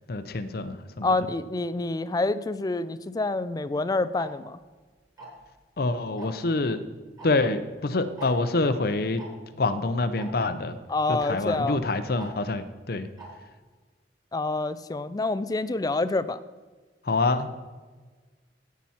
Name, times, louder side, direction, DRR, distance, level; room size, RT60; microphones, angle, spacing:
voice 1, 0.1-1.2 5.8-6.8 7.2-9.2 9.6-10.8 11.1-13.1 17.0-17.5, left 2 dB, 60° left, 11 dB, 0.7 m, -26 dB
voice 2, 1.0-4.6 10.9-11.8 14.3-16.4, left 3 dB, 20° left, 14 dB, 0.4 m, -27 dB
Tick-tock, 4.2-4.3 5.2-5.5 6.2-6.4 7.2-7.3 7.6-7.7 8.2-8.3 9.2-9.3 10.2-10.3 11.2-11.3 12.2-12.3 13.2-13.3, right 3 dB, 25° right, 2.7 m, -42 dB
16.5 x 6.0 x 4.3 m, 1.4 s
head